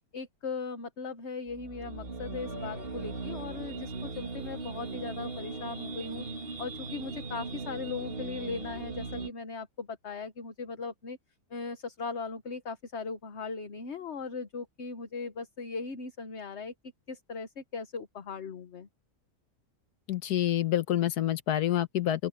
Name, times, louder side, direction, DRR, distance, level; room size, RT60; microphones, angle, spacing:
voice 1, 0.1-6.2 6.6-11.2 11.5-16.7 17.1-18.9, left 4 dB, 45° left, 1.4 m, -38 dB
sound 1, 1.5-9.3, right 3 dB, 35° right, 2.3 m, -38 dB
voice 2, 20.1-22.3, left 12 dB, 75° left, 1.5 m, -27 dB
open air
omnidirectional pair, 1.7 m